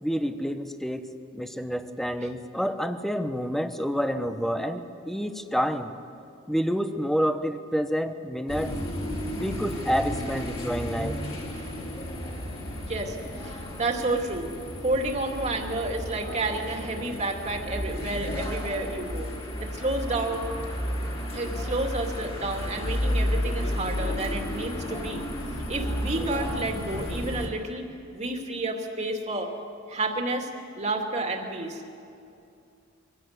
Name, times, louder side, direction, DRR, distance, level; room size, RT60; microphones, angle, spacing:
voice 1, 0.0-5.9 6.5-8.7 9.3-11.2, equal, ahead, 8 dB, 1.0 m, -28 dB
sound 1, 8.5-27.5, equal, 30° left, 3.2 m, -32 dB
voice 2, 13.4-14.5 14.8-19.3 19.6-20.5 21.3-25.2 25.7-27.9 28.1-29.5 29.9-30.5 30.8-31.8, right 2 dB, 35° right, 3 dB, 2.4 m, -30 dB
23.5 x 17.0 x 9.6 m, 2.6 s
head